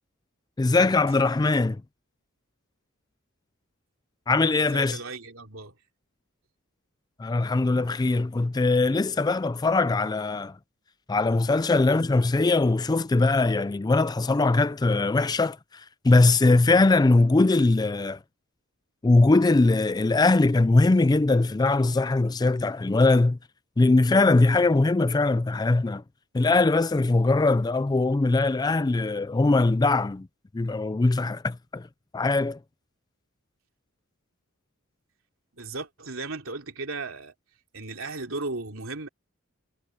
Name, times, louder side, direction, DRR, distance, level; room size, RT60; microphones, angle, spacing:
voice 1, 0.6-1.8 4.3-5.0 7.2-10.6 11.1-18.2 19.0-23.4 23.8-26.0 26.3-30.3 30.5-31.9 32.1-32.6, left 3 dB, 20° left, 0.3 m, -21 dB
voice 2, 4.6-5.7 35.5-37.3 37.7-39.1, right 3 dB, 70° right, 3.4 m, -36 dB
head